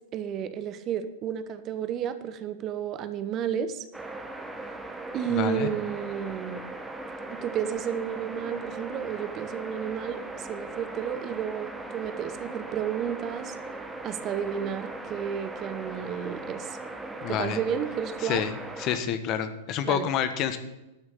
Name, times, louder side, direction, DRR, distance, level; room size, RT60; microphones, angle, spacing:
voice 1, 0.1-3.8 5.1-6.6 7.3-13.6 14.0-16.8 17.3-18.4 19.8-20.1, right 8 dB, 35° right, 11 dB, 1.0 m, -32 dB
sound 1, 3.9-19.0, right 2 dB, 5° right, 1.3 m, -39 dB
voice 2, 5.3-5.7 17.2-17.6 18.2-18.5 18.8-20.6, left 9 dB, 40° left, 10 dB, 1.2 m, -28 dB
12.0 x 6.3 x 7.7 m, 0.99 s
hypercardioid pair, 105°, 0 cm